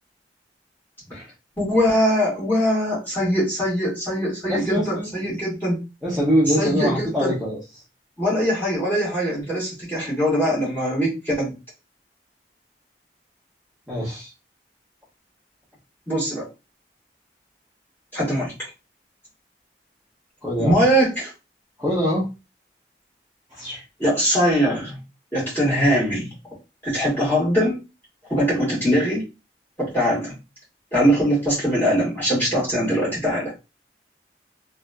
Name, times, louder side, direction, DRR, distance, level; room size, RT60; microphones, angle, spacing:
voice 1, 1.6-5.8 6.5-7.4 8.2-11.5 16.1-16.5 18.1-18.5 20.6-21.3 24.0-25.0 25.3-26.3 26.8-27.8 28.3-29.2 29.8-30.4 30.9-33.6, equal, 10° left, -8 dB, 1.8 m, -22 dB
voice 2, 4.5-5.3 6.0-7.6 13.9-14.3 20.4-20.8 21.8-22.3 23.5-23.8, equal, 5° right, -10 dB, 1.0 m, -24 dB
3.4 x 2.6 x 2.3 m, 0.27 s
head